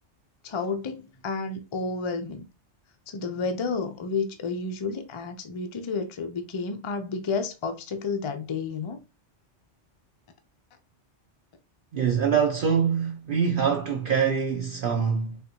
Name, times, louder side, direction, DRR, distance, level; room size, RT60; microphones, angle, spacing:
voice 1, 0.4-2.4 3.1-9.0, left 4 dB, 40° left, 0.4 m, -31 dB
voice 2, 11.9-15.4, right 7 dB, 60° right, 0.6 m, -24 dB
4.1 x 2.5 x 2.7 m
omnidirectional pair, 1.2 m